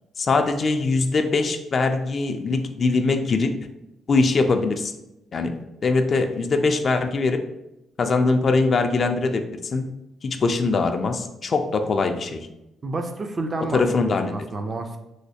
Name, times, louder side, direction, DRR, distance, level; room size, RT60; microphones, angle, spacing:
voice 1, 0.2-3.5 4.1-4.9 5.3-7.4 8.0-9.9 10.2-12.5 13.7-14.3, left 3 dB, 45° left, 6 dB, 0.3 m, -22 dB
voice 2, 12.8-15.0, right 2 dB, 35° right, 6 dB, 0.4 m, -30 dB
3.1 x 3.0 x 2.7 m, 0.91 s
cardioid pair, 90°, 0 cm